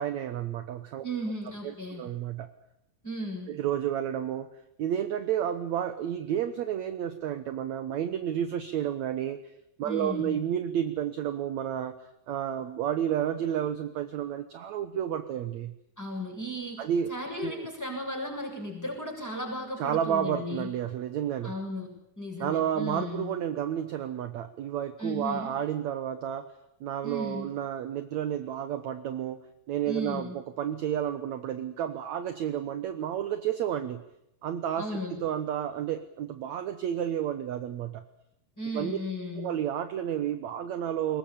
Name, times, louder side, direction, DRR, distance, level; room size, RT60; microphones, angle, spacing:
voice 1, 0.0-1.0 1.9-2.5 3.5-4.5 4.8-9.4 9.8-11.9 12.3-15.7 16.8-17.1 17.4-17.7 19.8-21.5 22.4-26.5 26.8-29.4 29.7-34.0 34.4-38.0 38.7-39.0 39.4-41.2, right 10 dB, 65° right, 11 dB, 2.1 m, -31 dB
voice 2, 1.0-2.0 3.0-3.5 9.8-10.3 16.0-20.7 21.4-21.9 22.2-23.3 25.0-25.5 27.0-27.5 29.9-30.3 34.8-35.2 38.6-39.4, equal, 5° left, 0 dB, 7.4 m, -35 dB
22.5 x 20.5 x 8.7 m, 0.82 s
omnidirectional pair, 4.1 m